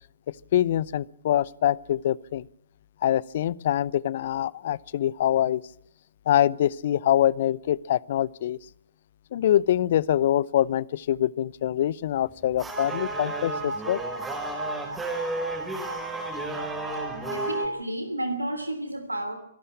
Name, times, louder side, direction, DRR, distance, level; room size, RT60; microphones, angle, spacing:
voice 1, 0.3-2.5 3.0-5.6 6.3-8.6 9.3-14.0, left 11 dB, 50° left, 23 dB, 0.7 m, -24 dB
sound 1, 12.3-17.7, right 2 dB, 10° right, 4.5 m, -31 dB
voice 2, 17.3-19.4, right 1 dB, 90° right, 7 dB, 3.2 m, -31 dB
25.5 x 12.5 x 8.8 m, 0.75 s
figure-of-eight pair, 115°, 0 cm